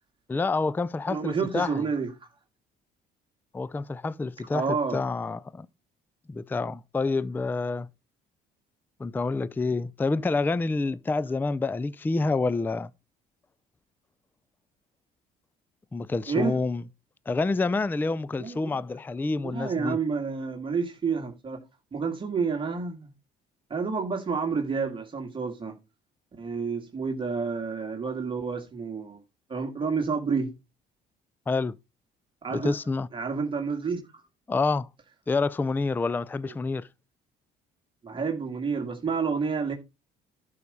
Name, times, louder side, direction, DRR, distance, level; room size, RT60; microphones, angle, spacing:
voice 1, 0.3-1.8 3.5-5.7 6.3-7.9 9.0-12.9 15.9-16.8 17.3-20.0 31.5-31.8 32.5-33.1 34.5-34.9 35.3-36.9, left 3 dB, 10° left, 0.4 m, -28 dB
voice 2, 1.1-2.1 4.5-5.0 16.3-16.6 18.4-18.8 19.4-21.6 21.9-23.1 23.7-25.8 26.4-29.2 29.5-30.5 32.4-32.7 33.1-34.0 38.0-39.7, right 5 dB, 30° right, 1.9 m, -29 dB
11.5 x 4.9 x 5.4 m
cardioid pair, 110°, 17 cm